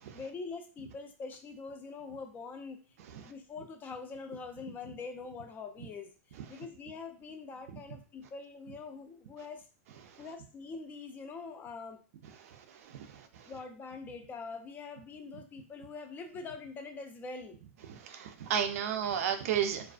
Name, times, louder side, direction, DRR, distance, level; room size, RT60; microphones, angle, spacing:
voice 1, 0.1-9.7 10.2-12.0 13.4-17.6, left 4 dB, 20° left, 5 dB, 0.4 m, -44 dB
voice 2, 12.4-13.5 17.9-19.9, right 8 dB, 70° right, 7 dB, 0.4 m, -34 dB
2.3 x 2.3 x 2.4 m, 0.37 s
hypercardioid pair, 130°, 8 cm